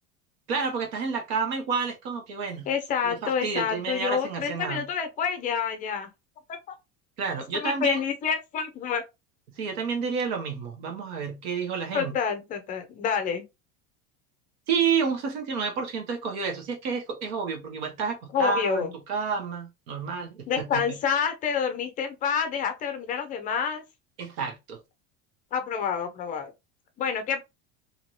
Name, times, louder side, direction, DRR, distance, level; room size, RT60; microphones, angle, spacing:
voice 1, 0.5-2.7 3.0-4.9 7.2-8.0 9.6-12.1 14.7-21.0 24.2-24.8, right 5 dB, 80° right, 1.2 m, -30 dB
voice 2, 2.7-6.1 6.5-6.6 7.5-9.0 11.9-13.4 18.3-18.9 20.5-23.8 25.5-26.5 27.0-27.4, left 7 dB, 25° left, 0.5 m, -28 dB
3.1 x 2.8 x 2.6 m
supercardioid pair, 160°, 31 cm